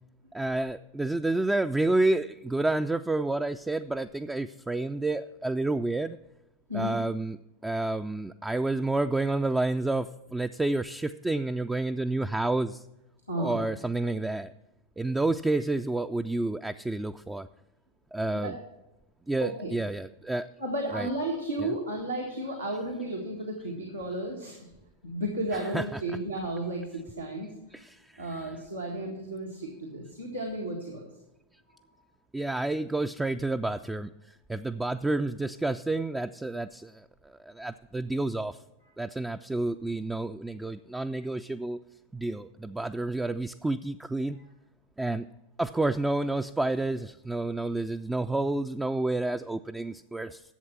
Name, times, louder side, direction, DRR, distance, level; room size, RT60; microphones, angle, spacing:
voice 1, 0.3-6.2 6.7-7.4 7.6-12.8 13.4-14.5 15.0-17.5 18.1-18.6 19.3-20.5 20.9-21.1 21.6-21.8 25.5-26.2 27.7-28.6 32.3-38.6 39.0-41.8 42.1-44.4 45.0-45.3 45.6-50.4, right 2 dB, 10° right, 8 dB, 0.3 m, -30 dB
voice 2, 13.3-13.7 18.3-18.5 19.4-19.7 20.6-24.6 25.0-27.8 28.2-31.1, right 1 dB, 90° right, -2 dB, 1.7 m, -33 dB
11.0 x 7.8 x 5.9 m, 0.95 s
figure-of-eight pair, 90°, 0 cm